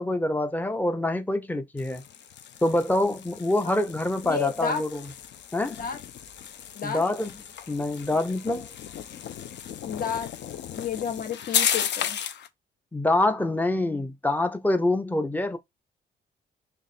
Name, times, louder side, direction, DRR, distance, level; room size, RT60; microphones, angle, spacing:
voice 1, 0.0-2.0 2.6-5.0 5.5-5.8 6.8-7.3 7.7-8.7 12.9-15.6, left 2 dB, 10° left, 0.7 m, -25 dB
sound 1, 1.8-12.5, left 9 dB, 65° left, 0.6 m, -34 dB
voice 2, 4.2-4.8 5.8-6.0 6.7-7.0 9.9-10.3 10.8-12.2, left 6 dB, 45° left, 1.1 m, -31 dB
3.3 x 2.5 x 4.2 m
cardioid pair, 90°, 20 cm